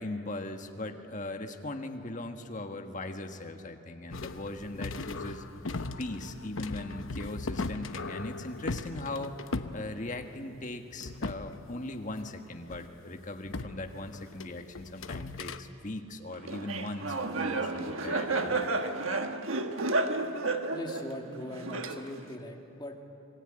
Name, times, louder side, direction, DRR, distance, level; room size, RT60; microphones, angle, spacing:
voice 1, 0.0-5.4 6.0-9.4 9.7-18.6, left 2 dB, 40° left, 5 dB, 1.5 m, -39 dB
sound 1, 4.1-10.6 10.9-12.3 12.7-12.9 13.4-15.6, left 3 dB, 75° left, 0.9 m, -38 dB
Laughter, 16.5-22.3, right 3 dB, 80° right, 1.4 m, -31 dB
voice 2, 20.7-23.0, left 1 dB, 20° left, 2 dB, 2.1 m, -41 dB
27.0 x 21.0 x 8.9 m, 2.9 s
head